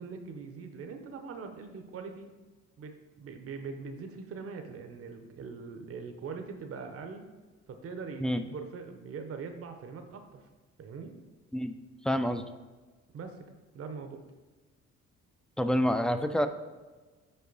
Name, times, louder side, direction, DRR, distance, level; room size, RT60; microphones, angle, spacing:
voice 1, 0.0-2.3 2.8-7.2 7.7-10.5 10.8-11.1 13.1-13.4 13.7-14.2, right 5 dB, 50° right, 6 dB, 0.7 m, -42 dB
voice 2, 12.0-12.4 15.6-16.5, equal, 5° left, 9 dB, 0.3 m, -27 dB
5.6 x 4.5 x 3.9 m, 1.3 s
cardioid pair, 90°, 30 cm